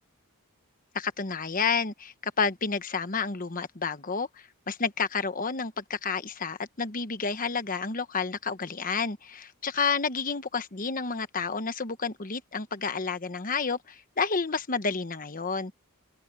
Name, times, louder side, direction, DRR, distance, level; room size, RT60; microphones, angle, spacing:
voice 1, 0.9-4.3 4.7-15.7, left 5 dB, 40° left, 1.2 m, -30 dB
open air
head